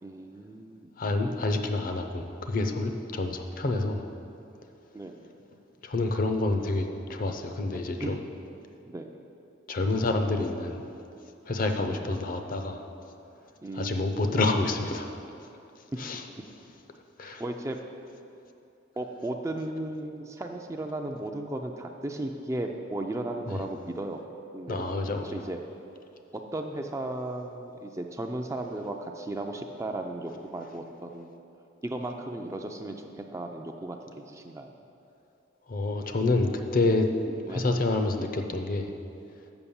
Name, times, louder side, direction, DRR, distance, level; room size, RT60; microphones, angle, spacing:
voice 1, 0.0-1.0 4.9-5.2 8.0-8.3 8.8-9.1 11.8-12.1 13.6-14.4 15.9-16.0 17.4-17.8 19.0-24.2 24.5-24.9 25.3-25.6 26.3-31.4 31.8-34.7 37.5-37.7, right 1 dB, 15° right, 3 dB, 0.4 m, -35 dB
voice 2, 1.0-4.0 5.8-8.2 9.7-10.8 11.5-12.8 13.7-15.1 16.0-16.2 17.2-17.4 23.5-23.6 24.7-25.4 35.7-38.9, left 2 dB, 45° left, 5 dB, 0.6 m, -28 dB
7.0 x 5.8 x 7.0 m, 2.7 s
head